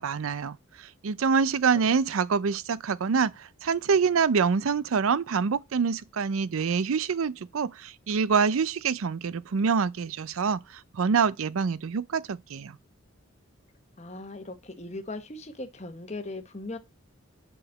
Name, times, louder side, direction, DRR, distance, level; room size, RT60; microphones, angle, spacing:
voice 1, 0.0-12.8, right 5 dB, 80° right, 0.5 m, -26 dB
voice 2, 14.0-16.8, left 2 dB, 30° left, 1.1 m, -39 dB
7.8 x 5.0 x 7.2 m
head